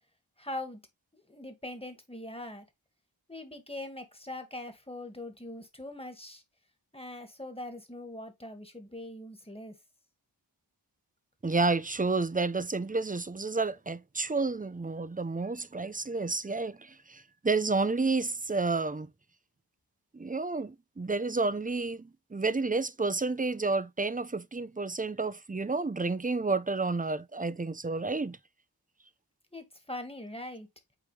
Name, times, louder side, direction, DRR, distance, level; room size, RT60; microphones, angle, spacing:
voice 1, 0.4-0.8 1.1-2.7 3.3-6.4 6.9-9.8 29.5-30.7, left 1 dB, 15° left, 1.8 m, -42 dB
voice 2, 11.4-19.1 20.1-28.4, right 3 dB, 20° right, 0.7 m, -30 dB
8.5 x 3.3 x 3.3 m
wide cardioid pair, 45°, 40 cm